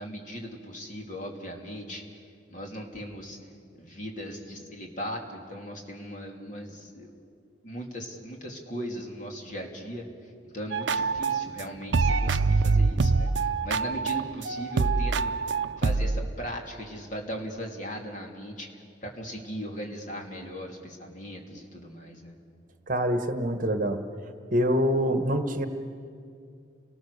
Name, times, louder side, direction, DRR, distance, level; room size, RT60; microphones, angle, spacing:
voice 1, 0.0-2.0 2.5-3.4 3.8-7.1 7.6-10.0 10.4-15.3 15.8-18.7 19.0-22.3, equal, 40° left, 1 dB, 2.8 m, -38 dB
sound 1, 10.7-11.6 11.9-16.3, right 4 dB, 75° right, 0.5 m, -25 dB
voice 2, 22.9-24.0 24.5-25.7, equal, 45° right, 7 dB, 1.3 m, -25 dB
29.5 x 19.5 x 6.8 m, 2.4 s
head